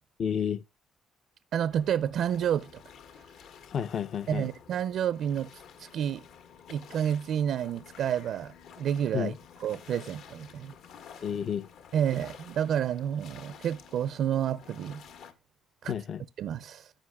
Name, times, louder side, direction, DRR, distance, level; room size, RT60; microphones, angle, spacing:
voice 1, 0.2-0.6 3.7-4.5 9.1-9.3 11.2-11.7 15.8-16.2, left 8 dB, 50° left, 0.6 m, -31 dB
voice 2, 1.5-2.8 4.3-6.2 6.7-9.3 9.6-10.7 11.9-15.0 15.8-15.9 16.4-16.9, right 9 dB, 65° right, 0.4 m, -30 dB
sound 1, 1.7-15.3, left 7 dB, 70° left, 1.6 m, -51 dB
14.0 x 6.2 x 2.3 m
cardioid pair, 120°, 0 cm